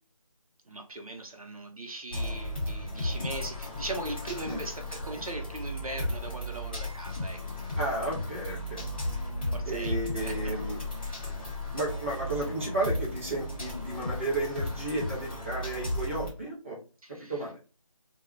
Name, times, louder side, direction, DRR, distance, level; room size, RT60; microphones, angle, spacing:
voice 1, 0.7-7.6 9.5-10.6 11.0-11.3 17.0-17.5, right 2 dB, 80° right, 4 dB, 0.7 m, -40 dB
sound 1, 2.1-16.3, left 1 dB, 15° left, 1.0 m, -35 dB
voice 2, 7.8-8.8 9.7-10.8 11.7-16.8 17.3-17.6, right 2 dB, 20° right, -6 dB, 0.6 m, -33 dB
2.3 x 2.1 x 3.1 m, 0.33 s
figure-of-eight pair, 175°, 18 cm